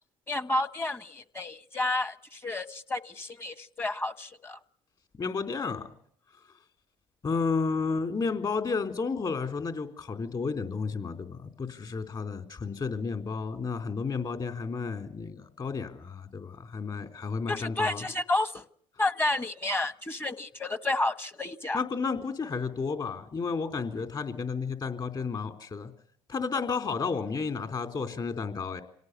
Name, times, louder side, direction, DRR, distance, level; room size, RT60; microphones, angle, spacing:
voice 1, 0.3-4.6 17.5-18.6 19.0-21.8, left 2 dB, 20° left, 14 dB, 1.3 m, -31 dB
voice 2, 5.1-5.8 7.2-18.1 21.7-25.9 26.3-28.8, left 4 dB, 40° left, 7 dB, 3.9 m, -32 dB
26.5 x 18.0 x 8.3 m, 0.63 s
supercardioid pair, 85°, 11 cm